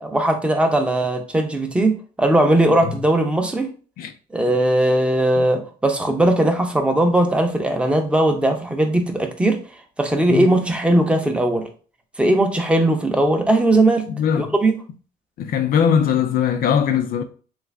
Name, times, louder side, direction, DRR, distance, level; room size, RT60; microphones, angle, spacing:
voice 1, 0.0-3.7 4.3-9.6 10.0-11.7 12.2-14.1 14.4-14.7, right 1 dB, 5° right, 0.6 m, -19 dB
voice 2, 14.1-14.5 15.4-17.2, left 8 dB, 60° left, 0.4 m, -20 dB
3.2 x 2.5 x 3.2 m
cardioid pair, 110°, 17 cm